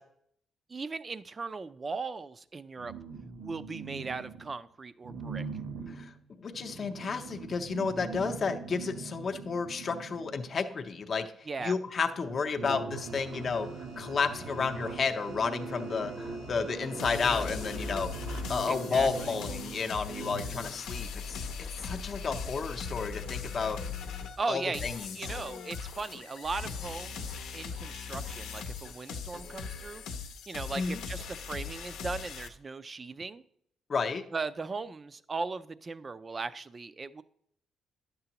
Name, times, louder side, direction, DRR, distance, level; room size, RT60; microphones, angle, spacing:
voice 1, 0.7-3.0 3.4-5.5 11.5-11.8 18.7-19.3 24.4-30.0 30.5-33.4 34.3-37.2, right 4 dB, 30° right, 15 dB, 0.4 m, -38 dB
sound 1, 2.8-4.6 5.0-10.7 11.6-11.7 12.0-20.9, right 4 dB, 65° right, 1.0 m, -42 dB
voice 2, 6.4-11.3 11.6-18.1 18.5-23.8 24.5-25.2 30.8-31.0 33.9-34.2, left 5 dB, 45° left, 5 dB, 0.6 m, -32 dB
sound 2, 13.0-18.4, right 3 dB, 85° right, 1.8 m, -50 dB
sound 3, 17.0-32.5, left 5 dB, 85° left, 0.7 m, -39 dB
10.5 x 6.8 x 2.9 m, 0.67 s
cardioid pair, 90°, 0 cm